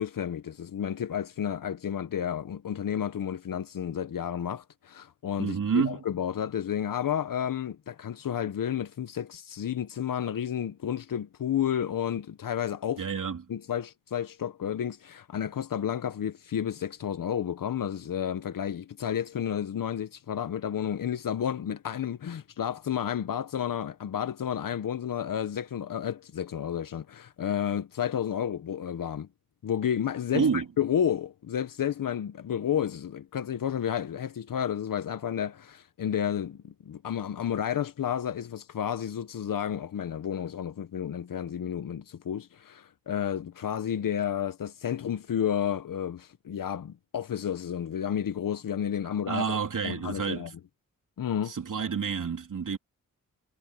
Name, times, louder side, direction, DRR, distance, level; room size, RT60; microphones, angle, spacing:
voice 1, 0.0-13.0 13.5-29.3 29.6-49.6 49.8-50.5 51.2-51.5, left 9 dB, 75° left, 0.9 m, -31 dB
voice 2, 5.4-6.0 13.0-13.4 30.3-30.7 49.3-50.5 51.5-52.8, right 6 dB, 65° right, 3.2 m, -29 dB
cardioid pair, 75°, 33 cm